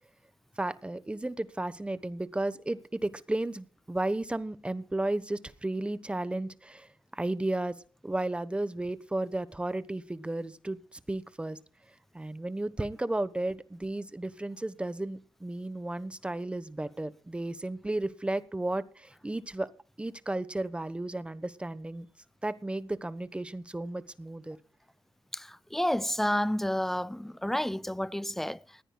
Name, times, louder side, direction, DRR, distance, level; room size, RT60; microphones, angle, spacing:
voice 1, 0.6-7.8 8.0-11.6 12.1-19.7 20.0-22.1 22.4-24.6, right 2 dB, 15° right, 1.1 m, -33 dB
voice 2, 25.3-28.8, left 1 dB, 5° left, 0.6 m, -30 dB
20.0 x 15.5 x 2.4 m
cardioid pair, 90°, 8 cm